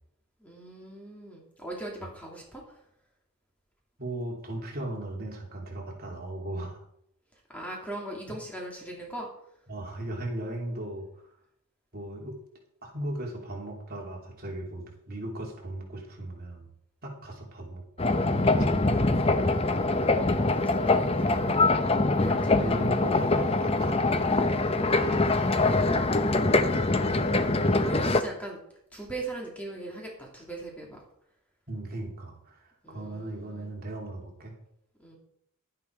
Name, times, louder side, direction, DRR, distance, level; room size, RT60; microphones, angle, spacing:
voice 1, 0.4-2.8 7.5-9.3 19.5-23.0 27.2-28.6 28.9-31.0 32.8-33.7 35.0-35.2, right 2 dB, 5° left, -2 dB, 2.7 m, -41 dB
voice 2, 4.0-6.8 9.7-11.3 11.9-12.4 12.8-16.7 17.0-19.4 22.6-24.9 31.7-34.5, right 1 dB, 45° right, -1 dB, 3.2 m, -37 dB
sound 1, 18.0-28.2, left 2 dB, 25° left, 0.7 m, -24 dB
11.5 x 10.5 x 4.7 m, 0.72 s
head